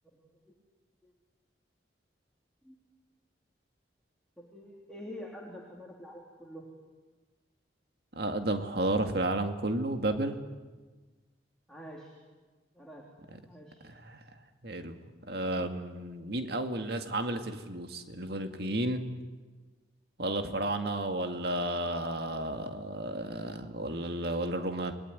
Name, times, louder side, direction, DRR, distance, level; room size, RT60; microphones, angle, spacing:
voice 1, 0.1-0.5 1.0-1.1 2.6-2.7 4.4-6.7 11.7-12.1 12.7-13.0 13.5-13.8, equal, 5° left, -3 dB, 3.4 m, -47 dB
voice 2, 8.2-10.4 13.8-14.2 14.6-15.0 15.3-19.0 20.2-24.9, right 1 dB, 55° right, 6 dB, 2.1 m, -32 dB
29.0 x 20.5 x 9.7 m, 1.3 s
head